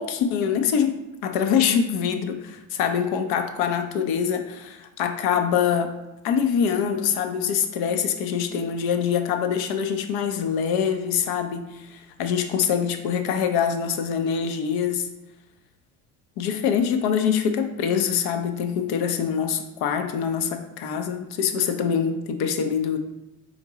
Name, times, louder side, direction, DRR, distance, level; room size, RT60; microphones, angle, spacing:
voice 1, 0.0-5.9 6.2-15.1 16.4-23.0, left 7 dB, 55° left, 7 dB, 0.7 m, -24 dB
4.3 x 3.9 x 3.0 m, 0.97 s
hypercardioid pair, 60°, 44 cm